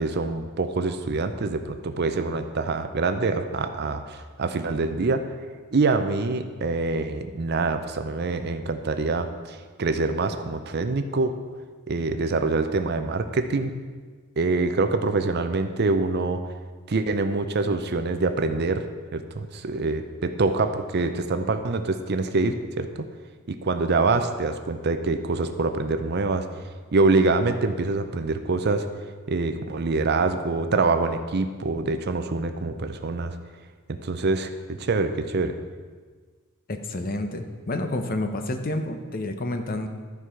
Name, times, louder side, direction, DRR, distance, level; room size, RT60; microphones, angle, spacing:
voice 1, 0.0-5.2 5.7-11.3 11.9-13.7 14.4-16.4 16.9-18.8 19.1-23.1 23.5-26.5 26.9-28.9 29.3-33.4 33.9-35.6, right 3 dB, 50° right, 8 dB, 0.6 m, -25 dB
voice 2, 36.7-39.9, left 2 dB, 40° left, 6 dB, 0.7 m, -29 dB
12.5 x 4.7 x 5.7 m, 1.5 s
head